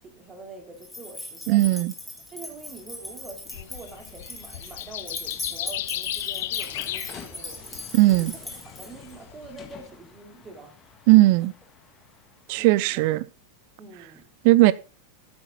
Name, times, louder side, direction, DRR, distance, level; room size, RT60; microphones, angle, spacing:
voice 1, 0.0-1.7 2.3-8.3 8.6-10.7 12.6-13.1 13.8-14.3, right 3 dB, 20° right, 2.8 m, -45 dB
sound 1, 0.8-9.1, left 2 dB, 5° left, 3.3 m, -39 dB
voice 2, 1.5-1.9 7.9-8.3 11.1-11.5 12.5-13.2 14.4-14.7, right 18 dB, 45° right, 0.5 m, -17 dB
sound 2, 2.1-12.8, left 7 dB, 25° left, 1.6 m, -51 dB
sound 3, 3.5-9.9, left 14 dB, 55° left, 0.5 m, -35 dB
13.5 x 8.1 x 3.8 m
figure-of-eight pair, 90°, 0 cm